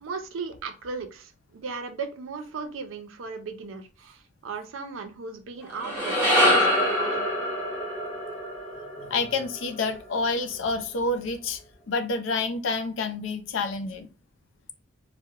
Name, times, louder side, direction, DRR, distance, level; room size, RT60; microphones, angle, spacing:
voice 1, 0.0-7.3, right 4 dB, 75° right, 7 dB, 0.5 m, -37 dB
sound 1, 5.6-10.1, left 1 dB, 10° right, 1.1 m, -25 dB
voice 2, 9.0-11.6 11.9-14.1, left 3 dB, 65° left, 7 dB, 0.4 m, -28 dB
2.8 x 2.0 x 2.3 m, 0.34 s
head